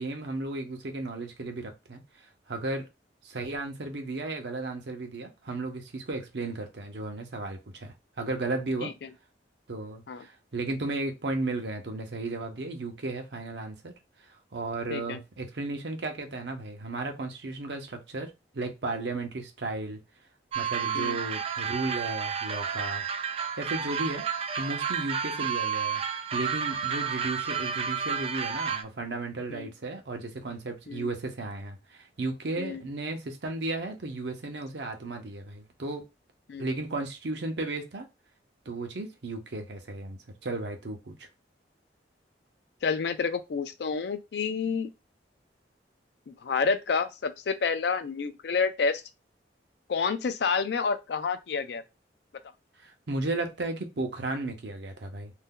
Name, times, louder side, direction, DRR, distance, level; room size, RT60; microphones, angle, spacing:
voice 1, 0.0-2.9 3.2-8.9 9.7-13.9 14.2-20.0 20.5-23.0 23.6-26.0 26.3-36.1 36.6-38.1 38.7-41.3 52.8-55.3, right 2 dB, 70° right, 0.7 m, -34 dB
sound 1, 20.5-28.8, right 7 dB, 35° right, 0.3 m, -31 dB
voice 2, 42.8-44.9 46.3-49.0 49.9-51.8, left 5 dB, 65° left, 0.4 m, -29 dB
2.6 x 2.2 x 3.6 m
head